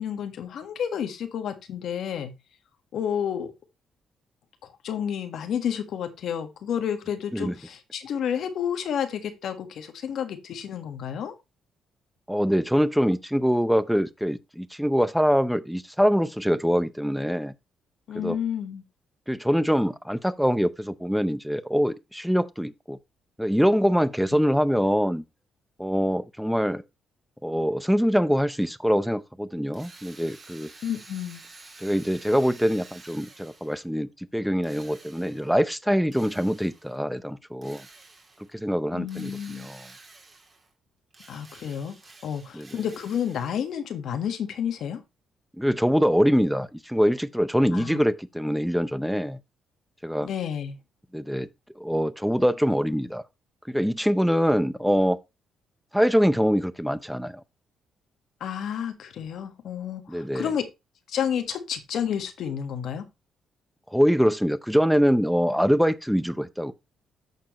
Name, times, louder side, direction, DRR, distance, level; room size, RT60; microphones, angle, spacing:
voice 1, 0.0-2.3 2.9-3.5 4.8-11.3 18.1-18.8 24.3-24.4 30.8-31.4 38.9-39.7 41.3-41.9 42.2-45.0 47.7-48.0 50.2-50.8 58.4-60.6 61.1-63.0, left 8 dB, 70° left, 1.5 m, -30 dB
voice 2, 12.3-17.5 18.1-18.4 19.3-23.0 23.4-25.2 25.8-26.8 27.4-30.7 31.8-37.9 38.5-39.8 42.5-42.8 45.6-49.4 50.0-50.3 51.1-51.5 51.8-53.2 53.7-55.2 55.9-57.4 60.1-60.5 63.9-66.7, equal, ahead, 0.6 m, -24 dB
Drill, 29.7-33.9 34.6-35.6 36.1-37.0 37.6-38.5 39.1-40.7 41.1-43.7, right 3 dB, 30° right, 2.6 m, -50 dB
13.5 x 4.6 x 3.0 m
cardioid pair, 90°, 0 cm